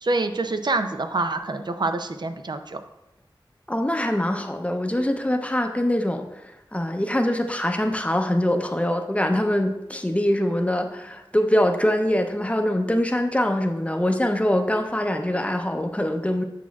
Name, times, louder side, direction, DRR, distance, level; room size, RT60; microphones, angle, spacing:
voice 1, 0.0-2.8, right 2 dB, 55° right, 8 dB, 0.5 m, -26 dB
voice 2, 3.7-16.4, left 1 dB, 15° left, 5 dB, 0.6 m, -23 dB
8.2 x 6.0 x 2.3 m, 0.93 s
wide cardioid pair, 50°, 9 cm